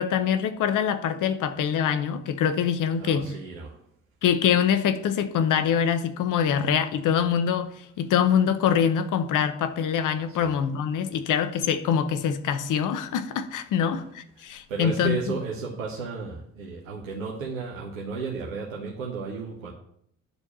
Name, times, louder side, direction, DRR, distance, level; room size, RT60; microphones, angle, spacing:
voice 1, 0.0-3.3 4.2-15.2, left 8 dB, 50° left, 1.0 m, -24 dB
voice 2, 3.0-3.8 10.3-10.5 14.4-19.7, right 4 dB, 80° right, 1.3 m, -34 dB
10.0 x 4.6 x 6.8 m
figure-of-eight pair, 45°, 40 cm